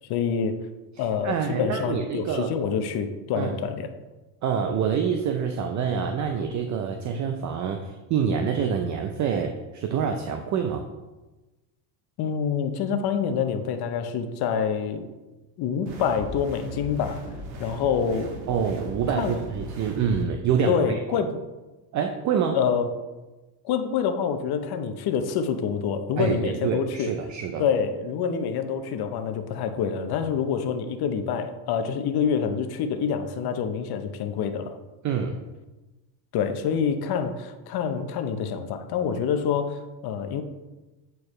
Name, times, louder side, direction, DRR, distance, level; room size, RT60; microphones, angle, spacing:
voice 1, 0.1-0.6 1.0-3.9 12.2-15.1 15.6-17.2 17.6-18.3 19.1-19.4 20.7-21.4 22.4-23.0 23.6-27.2 27.6-34.8 36.3-40.4, left 7 dB, 55° left, 8 dB, 0.8 m, -26 dB
voice 2, 1.2-2.5 3.3-3.5 4.4-10.8 18.5-20.8 21.1-21.2 21.9-22.6 26.2-27.7 35.0-35.4, right 7 dB, 40° right, 5 dB, 0.5 m, -26 dB
sound 1, 15.9-20.2, right 1 dB, 80° right, 1.3 m, -38 dB
8.2 x 4.6 x 3.2 m, 1.1 s
cardioid pair, 120°, 46 cm